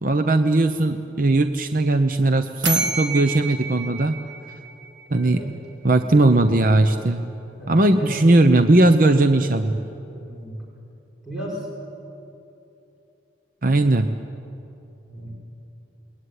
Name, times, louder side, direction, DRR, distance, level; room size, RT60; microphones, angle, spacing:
voice 1, 0.0-4.2 5.1-5.4 5.8-7.2 7.7-9.8 13.6-14.1, right 2 dB, 45° right, 8 dB, 0.8 m, -18 dB
sound 1, 2.6-5.4, right 3 dB, 75° right, 1.8 m, -29 dB
voice 2, 5.1-5.6 6.1-6.5 7.6-8.2 10.1-10.6 11.2-11.7 13.8-14.2 15.1-15.3, right 1 dB, 5° right, -5 dB, 6.3 m, -34 dB
28.5 x 21.0 x 9.7 m, 2.8 s
head